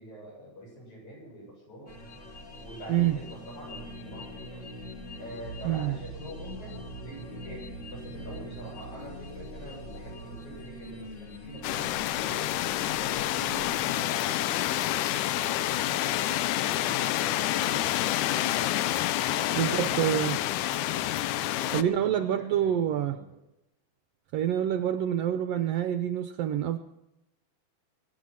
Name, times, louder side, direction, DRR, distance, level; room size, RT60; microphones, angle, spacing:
voice 1, 0.0-1.9 2.6-4.7 5.2-6.8 7.0-12.6 12.8-18.8 19.3-21.2 21.6-23.3, equal, 65° left, -3 dB, 9.3 m, -45 dB
sound 1, 1.9-13.9, equal, 30° left, 1.5 m, -43 dB
voice 2, 5.6-6.0 19.6-20.4 21.7-23.2 24.3-26.8, right 10 dB, 75° right, 10 dB, 1.5 m, -27 dB
sound 2, 11.6-21.8, left 14 dB, 80° left, 2.1 m, -28 dB
23.5 x 10.0 x 5.7 m, 0.87 s
omnidirectional pair, 3.6 m